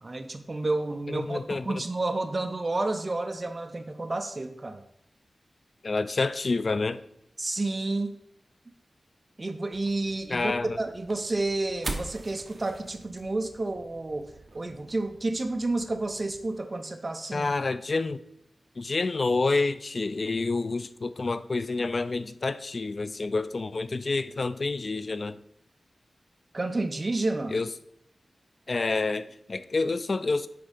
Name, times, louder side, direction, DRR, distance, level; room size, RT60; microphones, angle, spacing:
voice 1, 0.0-4.8 7.4-8.2 9.4-17.5 26.5-27.6, right 2 dB, 35° right, 0.6 m, -30 dB
voice 2, 1.1-1.8 5.8-7.0 10.3-10.8 17.3-18.2 18.8-25.4 27.5-27.7 28.7-30.5, left 3 dB, 50° left, 0.4 m, -28 dB
sound 1, 9.7-16.5, right 2 dB, 55° right, 1.0 m, -43 dB
9.4 x 3.6 x 5.1 m
wide cardioid pair, 105°, 0 cm